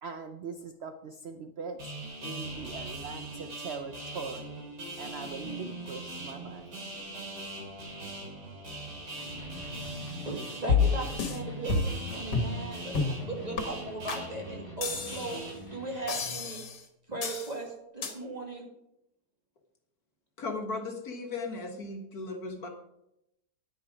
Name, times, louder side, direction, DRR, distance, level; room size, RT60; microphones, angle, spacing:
voice 1, 0.0-1.8 2.2-4.5 5.0-6.7, right 5 dB, 55° right, 8 dB, 0.7 m, -41 dB
sound 1, 1.8-15.5, right 2 dB, 75° right, 3.6 m, -41 dB
Electric guitar, 9.1-16.4, left 2 dB, 20° left, 3.2 m, -47 dB
voice 2, 10.2-13.0 13.2-15.4 15.7-16.6 17.1-18.7, right 3 dB, 25° right, 0 dB, 2.2 m, -38 dB
sound 2, 10.7-11.4 11.7-12.0 12.3-12.6 12.9-13.2 13.6-13.7 14.1-14.2 14.8-15.4 16.1-16.8 17.2-17.5 18.0-18.1, left 5 dB, 80° left, 2.0 m, -29 dB
voice 3, 20.4-22.7, left 3 dB, 65° left, 4 dB, 2.0 m, -36 dB
10.5 x 9.8 x 5.0 m, 0.83 s
omnidirectional pair, 1.8 m